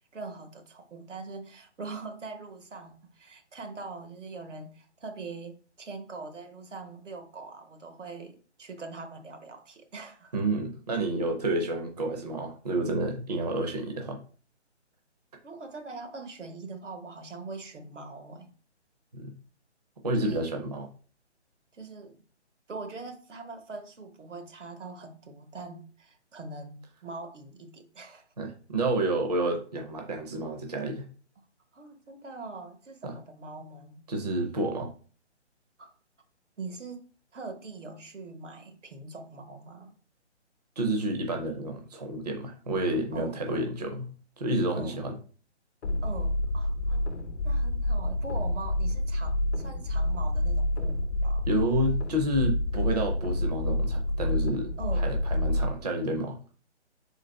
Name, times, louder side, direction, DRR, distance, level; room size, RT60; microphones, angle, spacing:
voice 1, 0.1-10.4 15.4-18.5 20.2-20.5 21.7-22.2 22.7-28.3 31.7-34.0 35.8-35.9 36.6-39.9 43.1-43.7 44.7-45.0 46.0-47.1 47.4-51.5 54.8-55.2, right 3 dB, 90° right, 1.1 m, -42 dB
voice 2, 10.3-14.2 19.1-19.3 20.0-20.9 28.4-31.1 33.0-33.1 34.1-34.9 40.8-44.1 44.4-45.2 51.5-54.7 55.0-56.4, right 1 dB, 35° right, 0.5 m, -29 dB
sound 1, 45.8-55.7, left 1 dB, 70° left, 0.7 m, -28 dB
3.9 x 2.8 x 4.3 m
hypercardioid pair, 170°, 35 cm